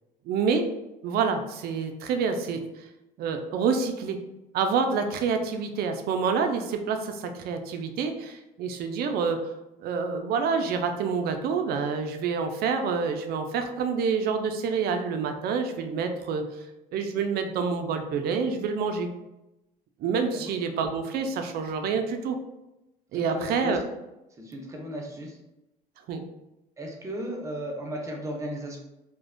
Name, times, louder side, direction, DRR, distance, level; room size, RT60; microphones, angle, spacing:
voice 1, 0.3-0.7 1.0-2.6 3.2-4.2 4.5-9.4 9.8-16.4 16.9-19.1 20.0-22.4 23.1-23.8 26.1-26.2, right 5 dB, 65° right, 6 dB, 0.4 m, -27 dB
voice 2, 23.1-23.8 24.4-25.4 26.8-28.8, equal, 20° right, 0 dB, 0.5 m, -35 dB
2.5 x 2.1 x 2.4 m, 0.92 s
cardioid pair, 110°, 17 cm